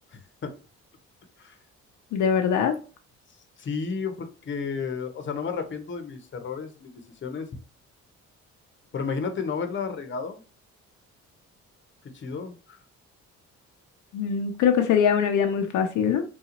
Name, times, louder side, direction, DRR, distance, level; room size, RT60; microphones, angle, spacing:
voice 1, 0.1-0.5 1.4-1.6 3.6-6.9 7.2-7.5 8.9-10.4 12.1-12.8, left 5 dB, 40° left, 0.8 m, -32 dB
voice 2, 2.1-2.7 14.1-16.2, left 7 dB, 80° left, 0.6 m, -22 dB
3.8 x 2.3 x 2.8 m
cardioid pair, 90°, 30 cm